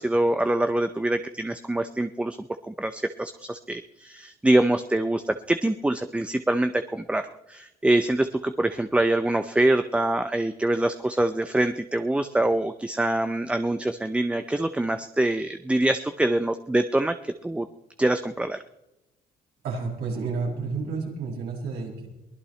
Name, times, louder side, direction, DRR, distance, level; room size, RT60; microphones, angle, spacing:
voice 1, 0.0-17.7 18.0-18.6, right 1 dB, 5° right, 9 dB, 0.6 m, -25 dB
voice 2, 19.6-22.1, right 4 dB, 75° right, -3 dB, 7.4 m, -30 dB
23.0 x 17.5 x 3.3 m, 0.96 s
cardioid pair, 110°, 17 cm